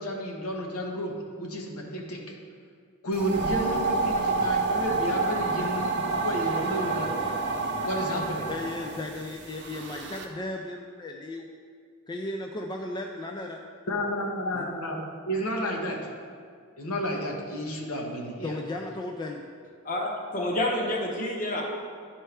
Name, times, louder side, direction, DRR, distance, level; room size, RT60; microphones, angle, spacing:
voice 1, 0.0-2.3 3.0-7.1 7.8-8.4 13.9-15.0 15.3-16.0 16.8-18.5, equal, 75° left, 0 dB, 1.1 m, -31 dB
sound 1, 3.1-10.2, right 3 dB, 55° right, 0.8 m, -29 dB
voice 2, 8.5-11.5 12.1-13.6 14.5-14.7 18.4-19.4, left 2 dB, 20° left, 1 dB, 0.3 m, -35 dB
voice 3, 19.8-21.6, left 1 dB, 40° left, -1 dB, 1.0 m, -28 dB
11.0 x 4.3 x 3.4 m, 2.1 s
head